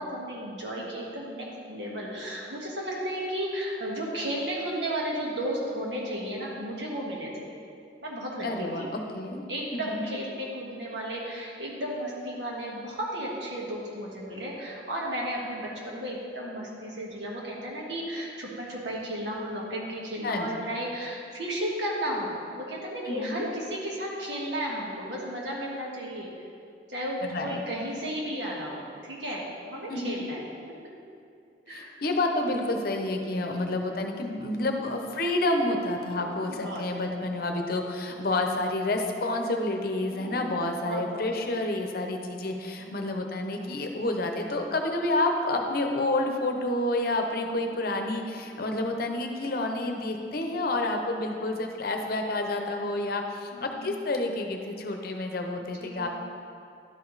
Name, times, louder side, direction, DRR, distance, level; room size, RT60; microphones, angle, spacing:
voice 1, 0.0-7.3 8.0-8.9 9.5-26.3 26.9-30.4 31.7-31.9 33.4-33.7 36.1-36.8 40.1-41.2 42.9-43.0 47.5-47.6 50.2-50.7 53.5-54.0 55.8-56.1, equal, 80° right, -3 dB, 1.6 m, -34 dB
voice 2, 8.4-8.9 9.1-9.4 9.9-10.1 20.2-20.7 23.0-23.5 27.3-27.6 29.9-30.2 31.7-56.1, left 2 dB, 55° left, 3 dB, 0.8 m, -29 dB
11.5 x 5.0 x 4.0 m, 2.4 s
head